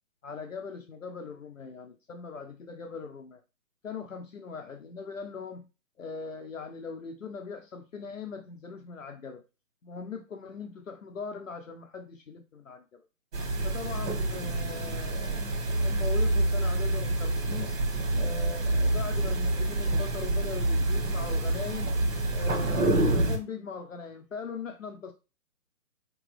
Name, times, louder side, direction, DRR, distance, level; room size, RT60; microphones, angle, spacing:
voice 1, 0.2-3.4 3.8-5.6 6.0-9.4 9.8-13.0 13.6-15.5 15.8-17.8 18.1-21.9 22.3-25.1, left 5 dB, 60° left, 4 dB, 0.8 m, -40 dB
sound 1, 13.3-23.4, right 2 dB, 60° right, 1.6 m, -27 dB
5.0 x 3.0 x 3.2 m, 0.30 s
hypercardioid pair, 170°, 45 cm